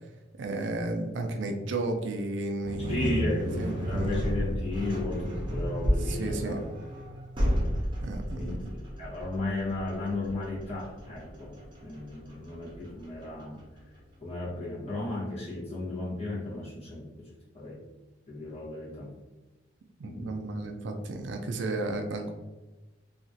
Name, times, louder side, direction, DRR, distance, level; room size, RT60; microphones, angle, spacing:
voice 1, 0.4-4.2 6.0-6.6 8.0-8.7 20.0-22.3, right 2 dB, 65° right, 4 dB, 0.4 m, -33 dB
sound 1, 2.6-13.8, equal, 25° right, 0.7 m, -32 dB
voice 2, 2.9-6.7 8.4-13.6 14.2-17.3 17.5-17.8 18.3-19.1 20.0-20.5, left 2 dB, 35° left, -8 dB, 1.2 m, -35 dB
2.9 x 2.4 x 2.7 m, 1.1 s
head